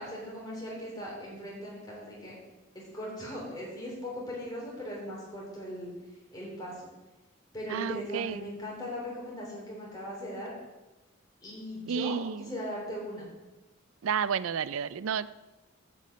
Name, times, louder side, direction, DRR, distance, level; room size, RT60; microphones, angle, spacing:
voice 1, 0.0-2.4 2.7-5.9 6.3-6.9 7.5-10.5 11.4-12.2 12.5-13.3, equal, 20° left, -4 dB, 3.3 m, -39 dB
voice 2, 7.7-8.5 11.9-12.6 14.0-15.4, right 7 dB, 80° right, 16 dB, 0.4 m, -31 dB
10.5 x 5.4 x 7.7 m, 1.1 s
head